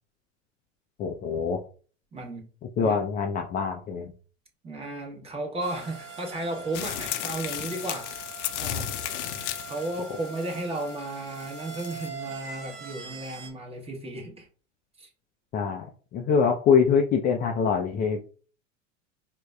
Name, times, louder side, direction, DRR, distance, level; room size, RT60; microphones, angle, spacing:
voice 1, 1.0-1.6 2.8-4.1 15.5-18.2, left 6 dB, 25° left, 3 dB, 0.4 m, -24 dB
voice 2, 2.1-2.5 2.8-3.0 4.6-8.1 8.6-9.0 9.7-14.5 15.0-15.1, right 2 dB, 15° right, 0 dB, 0.9 m, -34 dB
sound 1, 5.6-13.5, right 4 dB, 70° right, 1.1 m, -42 dB
sound 2, 6.7-12.1, left 11 dB, 70° left, 0.6 m, -34 dB
5.0 x 2.1 x 2.3 m, 0.40 s
hypercardioid pair, 95°, 37 cm